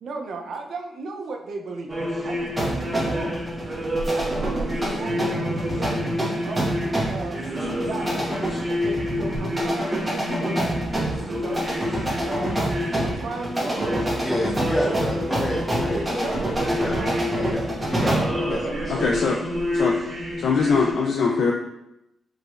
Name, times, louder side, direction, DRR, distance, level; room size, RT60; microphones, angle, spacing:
voice 1, 0.0-2.0 2.2-3.4 4.1-6.1 6.4-7.4 7.8-8.4 8.7-10.7 11.2-11.7 12.2-13.9 14.8-15.1 15.9-17.6 18.4-18.7, right 3 dB, 70° right, 3 dB, 0.5 m, -35 dB
sound 1, 1.9-20.9, left 1 dB, 40° right, 1.4 m, -29 dB
sound 2, 2.6-18.4, right 1 dB, 15° right, 1.3 m, -28 dB
voice 2, 14.2-16.4 16.7-17.0 17.5-18.6 18.9-19.2, left 1 dB, 20° left, -2 dB, 0.5 m, -30 dB
voice 3, 18.9-19.4 19.7-20.0 20.4-21.5, left 4 dB, 75° left, 0 dB, 0.3 m, -21 dB
4.6 x 3.0 x 2.5 m, 0.85 s
cardioid pair, 80°, 0 cm